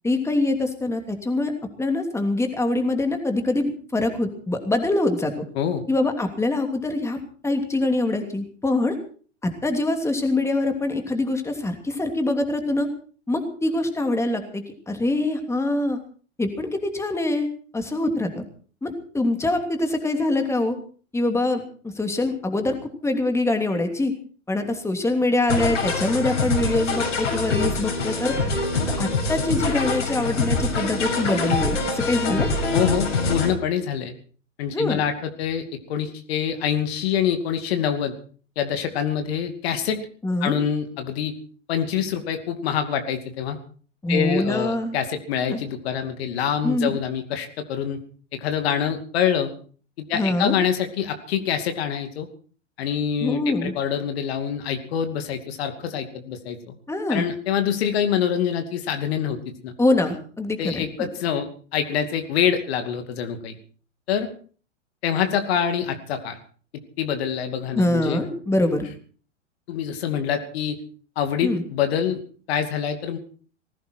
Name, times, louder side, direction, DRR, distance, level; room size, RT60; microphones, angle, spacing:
voice 1, 0.0-1.5 1.8-5.3 5.9-7.2 7.4-9.0 9.4-12.9 13.3-16.0 16.4-17.5 17.7-18.4 18.8-20.8 21.1-24.1 24.5-28.3 28.8-32.5 34.7-35.0 40.2-40.5 44.0-44.9 45.5-45.6 46.6-47.0 50.1-50.6 53.2-53.7 56.9-57.2 59.8-60.8 67.7-68.9 71.4-71.6, left 2 dB, 5° left, 5 dB, 2.9 m, -24 dB
sound 1, 25.5-33.5, left 3 dB, 75° left, 6.6 m, -24 dB
voice 2, 32.7-34.1 34.6-38.1 38.6-40.0 40.4-41.3 41.7-43.6 44.1-48.0 48.3-49.5 50.1-52.3 52.8-56.7 57.1-59.7 60.6-63.5 64.1-64.3 65.0-66.4 66.7-68.2 69.7-70.8 71.2-72.2 72.5-73.2, left 8 dB, 55° left, 7 dB, 2.6 m, -25 dB
19.5 x 16.5 x 4.6 m, 0.42 s
figure-of-eight pair, 95°, 37 cm